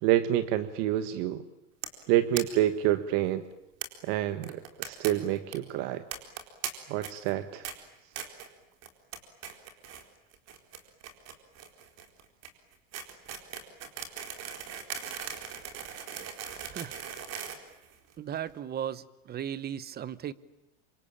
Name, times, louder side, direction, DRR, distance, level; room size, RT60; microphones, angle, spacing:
voice 1, 0.0-1.4 2.1-3.4 4.0-6.0 6.9-7.6, right 13 dB, 60° right, 11 dB, 1.5 m, -27 dB
sound 1, 1.8-2.0 2.3-2.4 2.7-2.8 3.0-3.1 3.8-3.9 4.4-5.1 5.4-5.6 6.1-6.7 7.0-7.3 7.6-7.7 8.2-8.5 8.8-9.2 9.4-10.0 10.3-18.4, right 8 dB, 40° right, 4.3 m, -39 dB
voice 2, 16.6-17.0 18.2-20.3, right 9 dB, 25° right, 17 dB, 1.0 m, -36 dB
27.0 x 24.5 x 8.9 m, 0.91 s
supercardioid pair, 140°, 37 cm